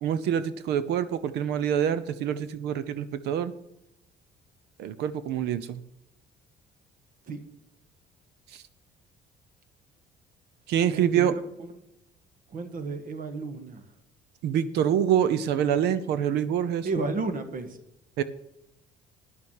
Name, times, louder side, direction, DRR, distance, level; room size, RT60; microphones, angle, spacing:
voice 1, 0.0-3.5 4.8-5.8 10.7-11.3 14.4-16.9 18.2-18.3, right 9 dB, 80° right, 14 dB, 0.7 m, -26 dB
voice 2, 10.9-11.8 12.5-13.8 16.8-17.8, right 3 dB, 55° right, 9 dB, 1.6 m, -33 dB
10.5 x 7.1 x 6.5 m, 0.85 s
cardioid pair, 110°, 17 cm